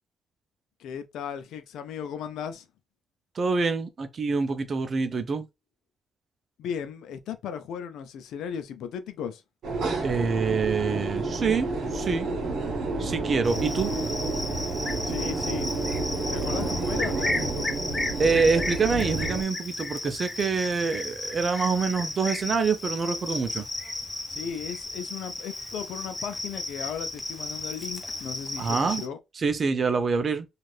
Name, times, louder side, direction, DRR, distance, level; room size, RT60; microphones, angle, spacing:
voice 1, 0.8-2.7 6.6-9.4 15.0-15.7 16.3-17.7 24.3-29.2, left 7 dB, 80° left, 0.5 m, -36 dB
voice 2, 3.4-5.5 10.0-12.3 13.0-13.9 18.2-23.6 28.6-29.0 29.4-30.5, right 4 dB, 45° right, 0.5 m, -26 dB
sound 1, 9.6-19.4, right 3 dB, 65° right, 0.9 m, -30 dB
Cricket, 13.4-29.1, left 2 dB, 15° left, 0.6 m, -34 dB
2.6 x 2.4 x 3.2 m
cardioid pair, 90°, 0 cm